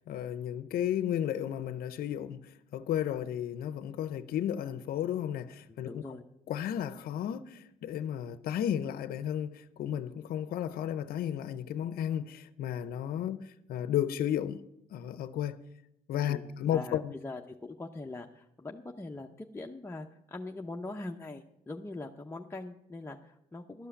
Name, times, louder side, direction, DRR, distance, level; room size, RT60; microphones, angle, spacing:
voice 1, 0.0-6.0 6.5-14.6 14.9-15.6 16.1-17.1, left 10 dB, 75° left, 0.6 m, -33 dB
voice 2, 5.7-6.2 16.2-23.9, left 2 dB, 15° left, 0.7 m, -42 dB
12.0 x 5.6 x 8.3 m
cardioid pair, 80°, 15 cm